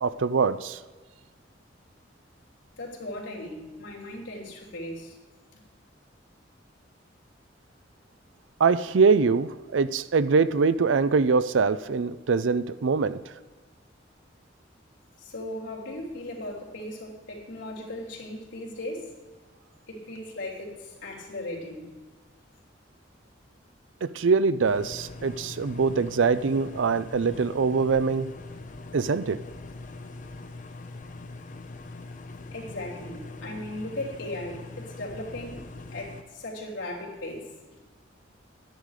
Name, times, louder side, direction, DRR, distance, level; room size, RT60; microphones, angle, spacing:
voice 1, 0.0-0.8 8.6-13.2 24.0-28.3 28.9-29.4, right 5 dB, 85° right, 15 dB, 0.5 m, -23 dB
voice 2, 2.7-5.2 15.2-19.1 19.9-21.9 32.5-35.6 35.9-37.8, left 1 dB, 75° left, -3 dB, 3.2 m, -37 dB
sound 1, 24.6-36.2, left 2 dB, 45° left, 0.8 m, -42 dB
12.5 x 10.5 x 4.9 m, 1.3 s
head